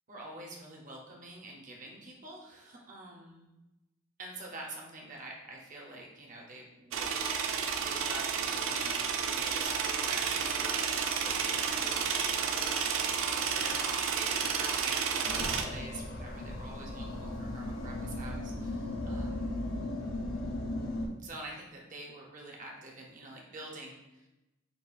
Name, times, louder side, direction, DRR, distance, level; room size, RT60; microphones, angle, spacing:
voice 1, 0.1-3.5 4.2-7.2 7.8-19.7 21.2-24.3, right 2 dB, 35° right, -1 dB, 0.7 m, -47 dB
sound 1, 6.9-15.6, right 6 dB, 75° right, 0.4 m, -31 dB
sound 2, 15.2-21.1, left 1 dB, 75° left, 0.6 m, -37 dB
6.9 x 2.3 x 2.4 m, 0.98 s
head